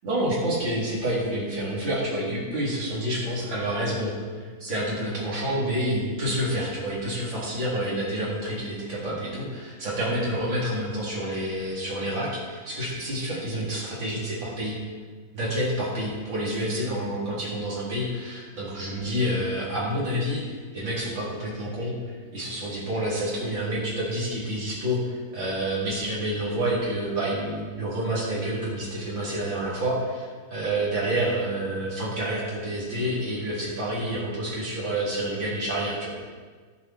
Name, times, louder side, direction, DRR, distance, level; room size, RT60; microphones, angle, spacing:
voice 1, 0.0-14.8 15.3-36.1, right 1 dB, 30° right, -7 dB, 4.6 m, -28 dB
13.5 x 12.0 x 4.8 m, 1.5 s
omnidirectional pair, 4.1 m